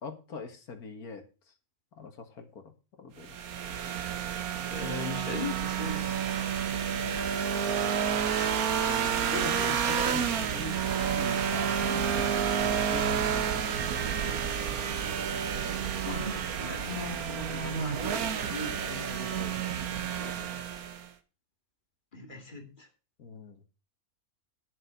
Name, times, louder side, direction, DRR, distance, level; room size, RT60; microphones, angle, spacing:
voice 1, 0.0-1.5 1.9-3.4 6.7-7.4 8.8-12.3 12.6-13.8 14.2-14.6 18.7-20.5 23.2-23.6, left 4 dB, 90° left, 6 dB, 2.2 m, -43 dB
sound 1, 3.2-21.1, right 8 dB, 80° right, 1.5 m, -30 dB
voice 2, 4.7-6.0 9.2-9.7 11.2-11.4 16.0-18.8 22.1-22.9, left 2 dB, 35° left, 5 dB, 2.3 m, -38 dB
9.9 x 7.5 x 5.6 m, 0.32 s
omnidirectional pair, 1.5 m